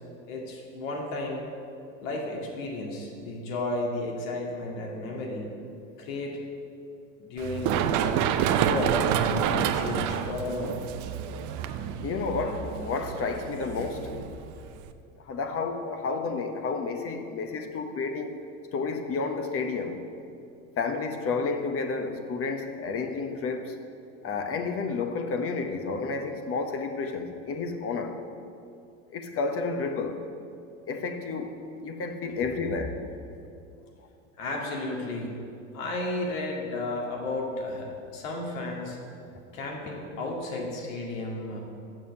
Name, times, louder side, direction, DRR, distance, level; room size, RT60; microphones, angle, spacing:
voice 1, 0.3-1.4 2.0-5.5 6.0-6.4 7.2-8.0 8.6-10.8 32.6-32.7 34.4-35.4 35.7-39.0 39.5-41.6, left 2 dB, 70° left, -1 dB, 2.1 m, -33 dB
Run, 7.4-14.9, right 9 dB, 45° right, 0.6 m, -28 dB
voice 2, 12.0-14.1 15.2-18.4 18.7-20.0 20.8-23.8 24.2-28.1 29.1-30.2 30.9-33.0, left 4 dB, 35° left, 6 dB, 1.0 m, -31 dB
7.5 x 6.8 x 6.5 m, 2.6 s
hypercardioid pair, 90°, 41 cm